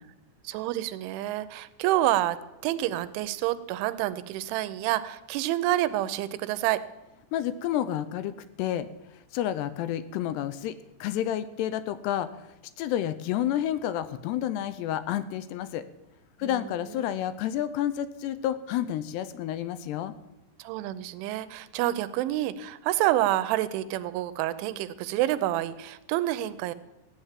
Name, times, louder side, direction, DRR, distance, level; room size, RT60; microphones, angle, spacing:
voice 1, 0.4-2.4 2.6-6.8 16.4-16.6 20.6-26.7, right 14 dB, 90° right, 14 dB, 3.2 m, -28 dB
voice 2, 7.3-8.3 8.6-10.7 11.0-12.5 12.8-15.9 16.4-20.1, left 11 dB, 80° left, 13 dB, 2.5 m, -30 dB
15.0 x 10.0 x 7.4 m, 0.97 s
omnidirectional pair, 5.4 m